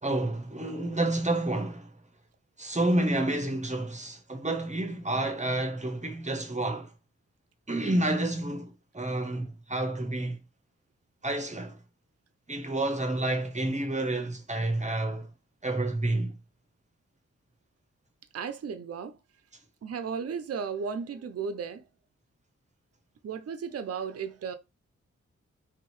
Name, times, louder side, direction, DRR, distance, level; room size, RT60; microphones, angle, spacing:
voice 1, 0.0-1.9 2.6-6.9 7.7-10.4 11.2-11.8 12.5-15.3 15.6-16.3, right 1 dB, 25° right, 0.9 m, -29 dB
voice 2, 18.3-19.2 19.8-21.8 23.2-24.6, right 6 dB, 55° right, 0.6 m, -34 dB
3.6 x 2.8 x 3.1 m
cardioid pair, 60°, 29 cm